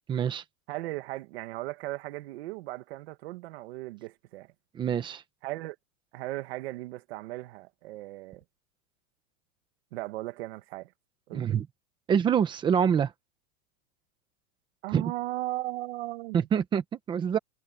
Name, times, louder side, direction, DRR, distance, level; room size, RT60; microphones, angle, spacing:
voice 1, 0.1-0.4 4.7-5.2 11.3-11.7 12.1-13.1 14.9-15.1 16.3-17.4, right 8 dB, 10° right, 0.9 m, -26 dB
voice 2, 0.7-4.5 5.4-5.8 6.1-8.4 9.9-10.9 11.3-11.5 14.8-16.5, right 18 dB, 45° right, 1.5 m, -37 dB
supercardioid pair, 175°, 43 cm